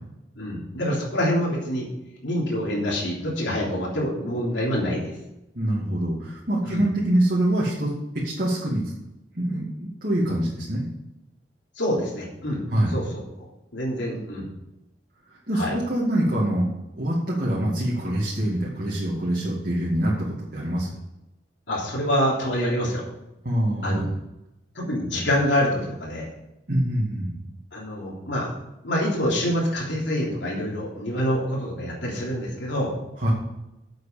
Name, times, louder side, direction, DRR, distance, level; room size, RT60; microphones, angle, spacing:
voice 1, 0.4-1.9 2.2-5.1 6.6-6.9 11.8-12.6 12.9-13.2 13.7-14.5 15.5-15.8 21.7-23.0 23.8-24.0 24.8-26.3 27.7-28.5 28.8-32.9, equal, 75° left, -4 dB, 3.5 m, -26 dB
voice 2, 5.5-8.8 9.3-10.9 12.7-13.0 14.1-14.2 15.3-16.7 16.9-20.3 20.5-20.9 23.4-24.1 26.7-27.4 33.2-33.3, right 1 dB, 50° right, -6 dB, 2.5 m, -25 dB
8.7 x 7.9 x 6.8 m, 0.91 s
head